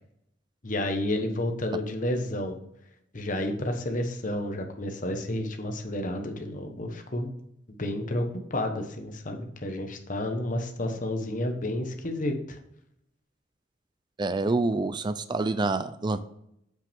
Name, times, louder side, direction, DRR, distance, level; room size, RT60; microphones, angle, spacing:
voice 1, 0.6-2.6 3.1-7.3 7.8-12.6, left 1 dB, 45° left, 5 dB, 1.1 m, -31 dB
voice 2, 14.2-16.2, right 3 dB, 25° right, 12 dB, 0.4 m, -27 dB
7.8 x 5.8 x 3.5 m, 0.77 s
head